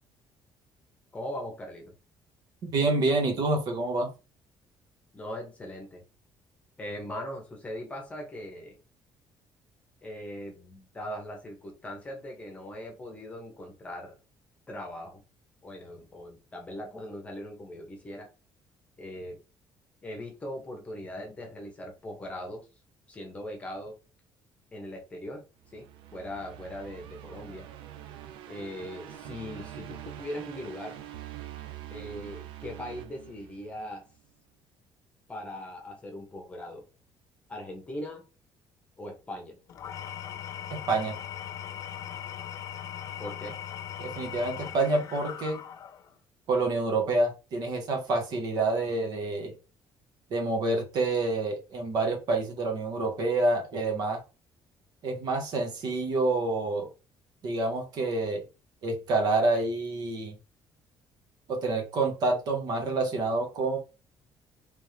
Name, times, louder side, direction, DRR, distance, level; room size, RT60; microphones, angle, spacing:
voice 1, 1.1-1.9 5.1-6.0 6.8-8.8 10.0-14.2 14.7-15.2 15.6-18.3 19.0-19.4 20.0-22.7 23.1-23.9 24.7-27.7 28.5-31.0 31.9-34.0 35.3-36.8 37.5-38.2 39.0-39.6 43.2-43.6, left 1 dB, 15° left, 1 dB, 1.0 m, -40 dB
voice 2, 2.6-4.1 40.7-41.2 44.0-45.6 46.5-49.5 50.3-54.2 55.0-56.9 57.4-58.4 58.8-60.4 61.5-63.8, right 2 dB, 50° right, 3 dB, 1.1 m, -27 dB
sound 1, 25.6-33.9, right 12 dB, 85° right, 0.5 m, -44 dB
Engine / Tools, 39.7-46.1, left 10 dB, 40° left, 0.4 m, -39 dB
3.5 x 3.1 x 3.2 m, 0.31 s
cardioid pair, 175°, 9 cm